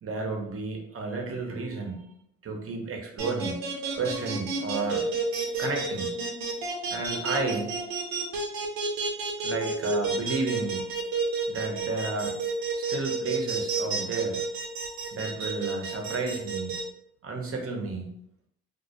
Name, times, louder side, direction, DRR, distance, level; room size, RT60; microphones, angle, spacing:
voice 1, 0.0-2.0 2.4-5.1 5.6-6.2 6.9-7.8 9.4-10.9 11.5-12.4 12.7-14.4 15.1-16.8 17.2-18.1, right 3 dB, 40° right, 1 dB, 0.8 m, -32 dB
sound 1, 3.2-16.8, right 5 dB, 70° right, 0.7 m, -30 dB
2.3 x 2.0 x 2.7 m, 0.71 s
hypercardioid pair, 45°, 37 cm